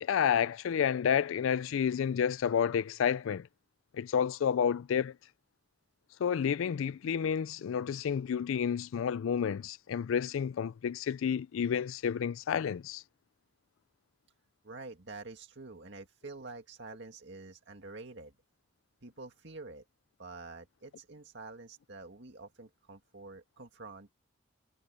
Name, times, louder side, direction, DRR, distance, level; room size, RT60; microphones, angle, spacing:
voice 1, 0.0-3.5 3.9-5.1 6.2-13.0, left 7 dB, 80° left, 0.4 m, -30 dB
voice 2, 14.6-18.3 19.0-19.8 20.2-24.1, right 3 dB, 60° right, 2.1 m, -47 dB
head